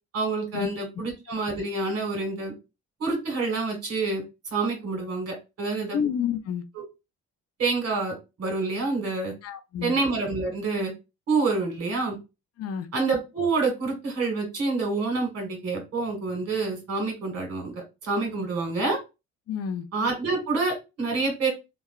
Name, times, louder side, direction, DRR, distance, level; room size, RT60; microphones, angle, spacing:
voice 1, 0.1-2.5 3.0-4.2 4.5-6.0 6.8-6.9 7.6-9.3 9.8-10.9 11.3-12.2 12.9-19.0 19.9-21.5, right 3 dB, 55° right, 1.6 m, -27 dB
voice 2, 5.9-6.6 9.4-9.9 12.6-12.9 19.5-19.9, left 7 dB, 55° left, 0.5 m, -29 dB
2.9 x 2.2 x 2.3 m
cardioid pair, 90°, 30 cm